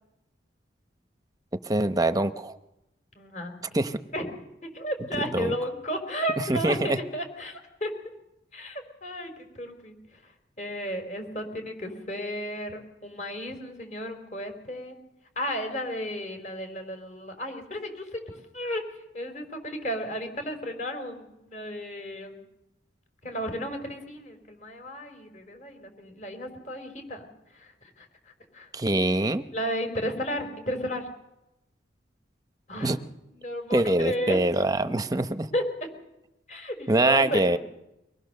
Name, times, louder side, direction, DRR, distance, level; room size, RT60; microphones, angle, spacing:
voice 1, 1.6-2.6 3.7-4.0 5.3-5.5 6.4-7.0 28.7-29.4 32.8-33.0 33.7-35.5 36.9-37.6, right 2 dB, 20° right, 10 dB, 0.9 m, -24 dB
voice 2, 3.2-3.5 4.1-4.3 4.6-7.9 8.5-10.0 10.6-15.0 15.4-18.8 19.1-22.4 23.2-27.3 27.5-28.1 28.5-28.7 29.5-31.1 32.7-32.9 33.4-34.4 35.5-35.9 36.5-37.6, equal, 40° left, 6 dB, 4.0 m, -33 dB
24.0 x 19.5 x 6.7 m, 0.93 s
head